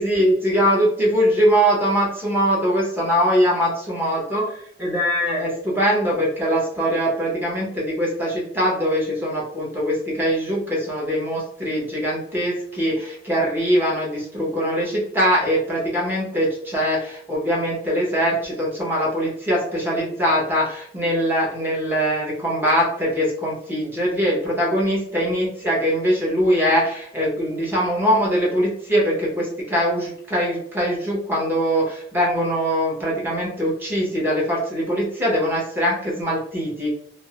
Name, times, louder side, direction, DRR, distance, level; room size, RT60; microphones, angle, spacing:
voice 1, 0.0-36.9, equal, 10° right, -5 dB, 0.8 m, -22 dB
2.4 x 2.0 x 2.8 m, 0.67 s
head